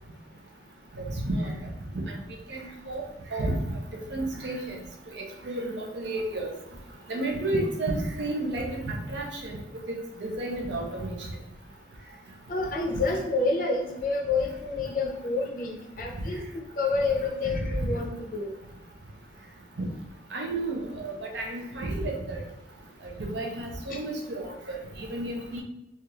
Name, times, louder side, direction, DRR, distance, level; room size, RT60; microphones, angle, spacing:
voice 1, 1.0-1.5 1.9-2.2 2.5-3.0 3.3-3.6 4.1-4.8 5.2-6.5 7.1-9.6 10.2-11.3 19.8-19.9 20.3-22.4 23.2-25.6, right 2 dB, 70° right, 0 dB, 0.7 m, -31 dB
voice 2, 12.5-18.6 23.9-24.0, left 3 dB, 45° left, 0 dB, 0.5 m, -29 dB
3.4 x 2.4 x 2.9 m, 0.93 s
head